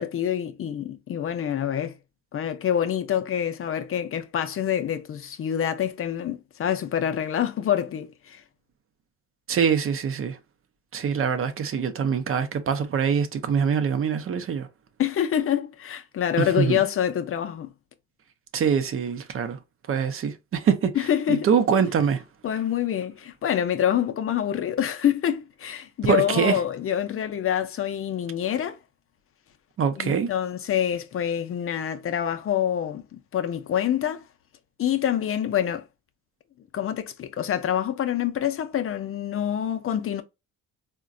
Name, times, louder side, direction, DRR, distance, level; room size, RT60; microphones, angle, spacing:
voice 1, 0.0-2.0 2.3-8.4 15.0-17.7 20.9-21.5 22.4-28.8 30.0-34.2 34.8-35.8 36.7-40.2, left 10 dB, 45° left, 0.5 m, -26 dB
voice 2, 9.5-10.4 10.9-14.7 16.4-16.8 18.5-19.6 19.9-20.9 21.3-22.2 26.0-26.6 29.8-30.3, right 7 dB, 45° right, 0.6 m, -24 dB
3.7 x 2.2 x 2.5 m
cardioid pair, 90°, 30 cm